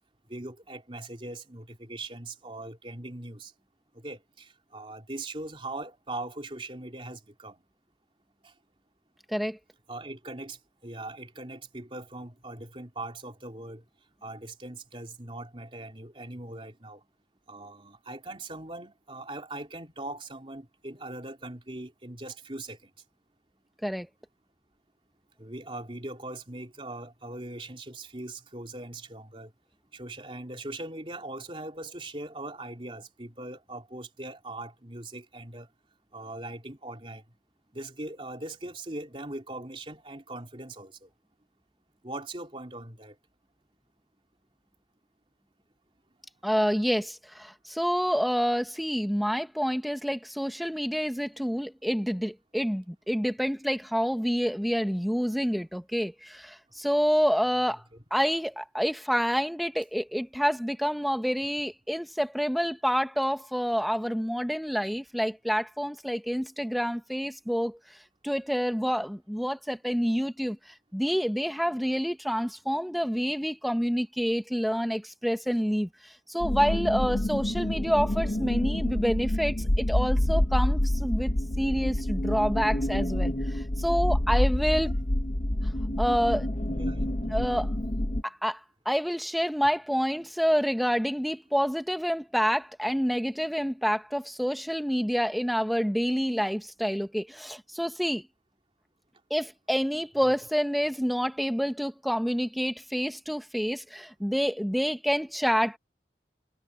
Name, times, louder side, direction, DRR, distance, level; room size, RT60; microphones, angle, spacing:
voice 1, 0.3-3.5 3.9-7.6 8.4-8.5 9.9-13.8 14.2-17.0 17.5-22.9 25.4-29.5 29.9-35.7 36.1-37.2 37.7-41.1 42.0-43.2 84.8-84.9 86.7-87.2 100.2-100.3, right 2 dB, 30° right, 3.3 m, -40 dB
voice 2, 46.4-57.8 58.1-67.8 68.2-70.6 70.9-75.9 76.3-81.3 81.6-84.9 86.0-86.5 87.3-87.7 88.2-88.6 88.8-98.2 99.3-105.8, equal, ahead, 1.2 m, -28 dB
sound 1, 76.4-88.2, left 1 dB, 40° left, 1.0 m, -27 dB
head